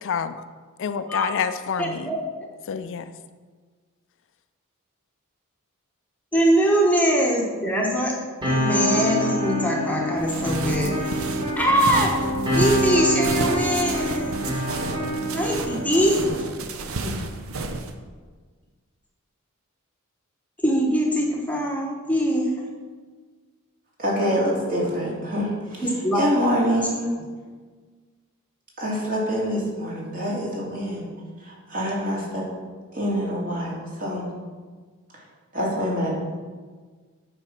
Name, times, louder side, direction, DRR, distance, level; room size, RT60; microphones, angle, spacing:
voice 1, 0.0-0.4 0.8-2.2 2.7-3.1, left 6 dB, 60° left, 11 dB, 0.4 m, -28 dB
voice 2, 1.8-2.2 6.3-8.1 8.5-11.0 11.6-12.1 12.5-14.5 15.3-16.2 17.0-17.2 20.6-22.5 25.8-26.2, equal, 5° left, -1 dB, 1.0 m, -22 dB
sound 1, 8.4-16.5, equal, 20° right, 2.3 m, -26 dB
sound 2, 10.2-17.9, right 3 dB, 70° right, 0.7 m, -32 dB
voice 3, 24.0-27.1 28.8-31.1 31.4-32.4 32.9-34.2 35.5-36.1, equal, 40° right, -4 dB, 2.6 m, -26 dB
8.9 x 4.9 x 5.8 m, 1.5 s
head